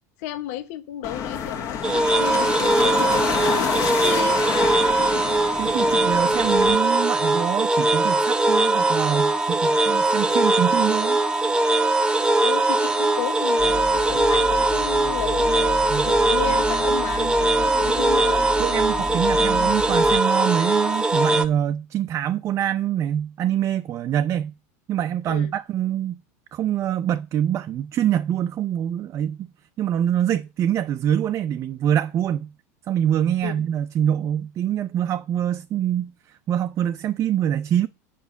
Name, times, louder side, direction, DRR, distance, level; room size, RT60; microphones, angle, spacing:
voice 1, 0.2-3.7 4.0-5.3 12.4-15.8 16.1-18.4 25.3-25.5 33.4-33.6, left 13 dB, 70° left, 0.8 m, -33 dB
sound 1, 1.0-6.7, left 8 dB, 40° left, 1.6 m, -28 dB
sound 2, 1.8-21.4, right 2 dB, 10° right, 0.9 m, -20 dB
voice 2, 5.6-11.2 15.9-16.1 18.6-24.5 24.9-26.2 26.5-29.5 29.8-32.5 32.9-37.9, right 10 dB, 35° right, 0.5 m, -25 dB
sound 3, 13.6-20.2, left 3 dB, 10° left, 1.4 m, -34 dB
8.1 x 5.4 x 6.9 m
supercardioid pair, 125°, 9 cm